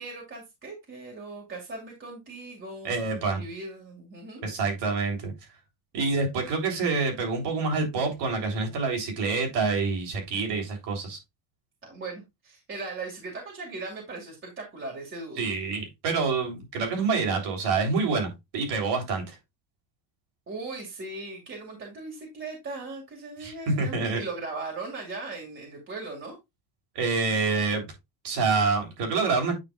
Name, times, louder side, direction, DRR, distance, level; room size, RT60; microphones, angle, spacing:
voice 1, 0.0-2.9 3.3-4.4 11.8-15.4 20.5-26.4, right 3 dB, 30° right, 2.2 m, -38 dB
voice 2, 2.8-3.4 4.4-5.3 5.9-11.2 15.4-19.4 23.4-24.2 27.0-27.9 28.2-29.5, right 4 dB, 65° right, 3.7 m, -27 dB
9.0 x 5.5 x 2.4 m
cardioid pair, 150°, 43 cm